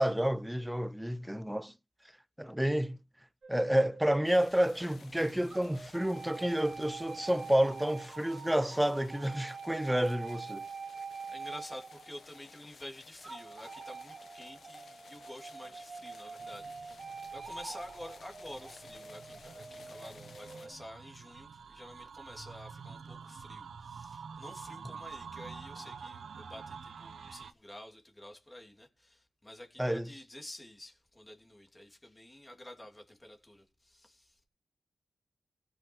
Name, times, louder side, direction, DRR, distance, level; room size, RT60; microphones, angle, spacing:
voice 1, 0.0-1.7 2.4-3.0 3.5-10.7 29.8-30.1, right 1 dB, 5° right, 0.8 m, -29 dB
sound 1, 3.4-5.0 5.5-12.6 13.2-20.7, right 4 dB, 60° right, 3.7 m, -46 dB
sound 2, 4.2-20.7, left 5 dB, 85° left, 1.3 m, -57 dB
voice 2, 11.3-34.4, left 1 dB, 15° left, 3.1 m, -50 dB
sound 3, 16.4-27.5, right 6 dB, 85° right, 0.8 m, -48 dB
16.5 x 6.8 x 4.5 m
cardioid pair, 70°, 0 cm